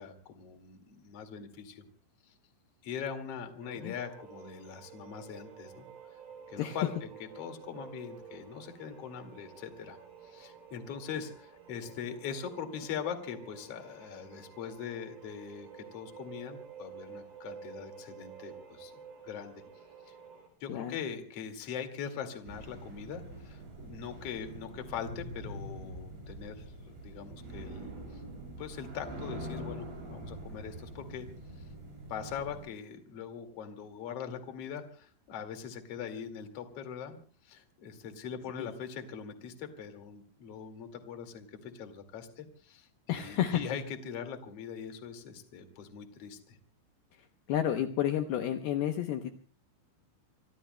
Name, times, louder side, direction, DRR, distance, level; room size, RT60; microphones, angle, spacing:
voice 1, 0.0-1.8 2.8-5.9 6.5-7.1 7.4-10.0 10.2-18.9 19.2-19.5 20.1-20.2 20.6-28.2 28.6-31.3 32.1-37.2 37.4-46.6, left 7 dB, 45° left, 6 dB, 2.1 m, -42 dB
sound 1, 3.6-20.5, right 6 dB, 85° right, 6.2 m, -51 dB
sound 2, 22.4-32.7, right 1 dB, 60° right, 9.7 m, -44 dB
voice 2, 43.1-43.6 47.5-49.3, left 10 dB, 85° left, 6 dB, 2.1 m, -31 dB
26.0 x 24.5 x 2.2 m, 0.40 s
omnidirectional pair, 5.7 m